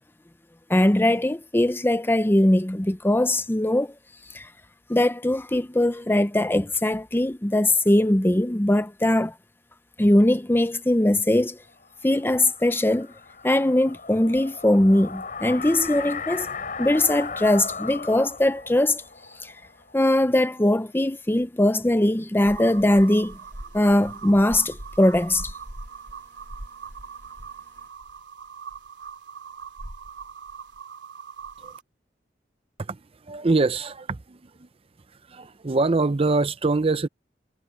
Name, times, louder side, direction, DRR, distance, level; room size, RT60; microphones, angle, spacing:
voice 1, 0.7-3.9 4.3-4.5 4.9-9.3 10.0-11.6 12.0-13.1 13.4-16.5 16.8-19.0 19.4-19.5 19.9-23.4 23.7-25.5, left 1 dB, 15° left, 0.6 m, -21 dB
sound 1, 11.9-20.7, left 5 dB, 50° left, 6.3 m, -37 dB
sound 2, 22.4-31.8, right 4 dB, 75° right, 3.5 m, -40 dB
voice 2, 32.8-34.7 35.3-37.1, right 3 dB, 35° right, 0.6 m, -24 dB
head